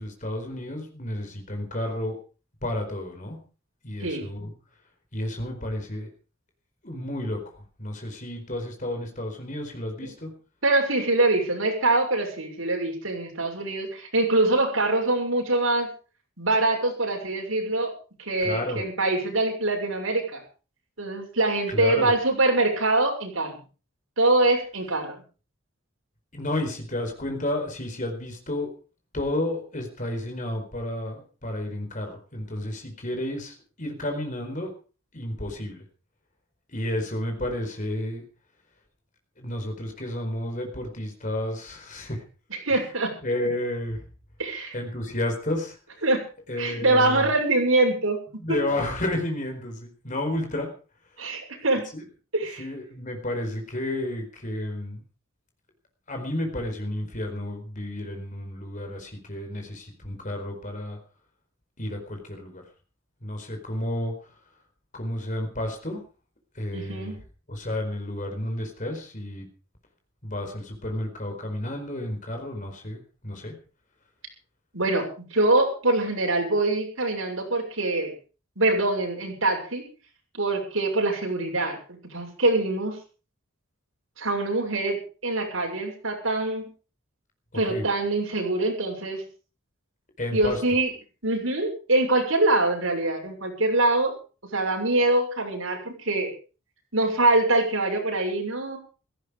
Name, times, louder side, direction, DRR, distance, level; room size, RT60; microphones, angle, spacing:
voice 1, 0.0-2.2 2.6-3.4 3.8-4.5 5.1-6.1 6.8-7.4 7.8-10.3 18.4-18.8 21.7-22.1 26.3-28.7 29.1-34.7 35.1-35.8 36.7-38.2 39.4-42.2 43.2-44.0 44.7-45.8 46.5-47.3 48.4-50.7 51.9-52.0 52.6-55.0 56.1-61.0 61.8-62.6 63.2-64.3 64.9-66.0 66.5-67.2 67.5-69.5 70.2-73.5 87.5-87.9 90.2-90.6, left 1 dB, 40° left, 5 dB, 4.6 m, -31 dB
voice 2, 10.6-15.9 16.4-17.9 18.2-20.4 21.0-23.5 24.2-25.2 42.6-43.1 44.4-44.7 46.0-46.2 46.6-48.2 48.5-48.6 51.2-51.8 52.3-52.6 66.7-67.2 74.7-78.1 78.6-79.8 80.3-81.8 82.1-82.9 84.2-86.7 87.5-89.2 90.3-90.9 91.2-94.1 94.5-96.3 96.9-98.8, right 2 dB, 75° right, 1 dB, 6.6 m, -24 dB
16.5 x 14.0 x 5.1 m, 0.36 s
head